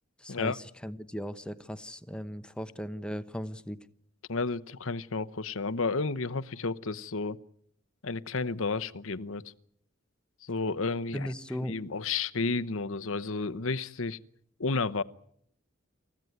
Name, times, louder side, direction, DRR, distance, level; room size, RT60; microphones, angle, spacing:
voice 1, 0.2-3.8 11.1-11.8, equal, 5° left, 11 dB, 0.9 m, -37 dB
voice 2, 4.3-7.4 8.0-9.4 10.4-11.3 11.7-14.2 14.6-15.0, left 4 dB, 70° left, 14 dB, 0.9 m, -31 dB
28.0 x 15.5 x 9.5 m, 0.68 s
head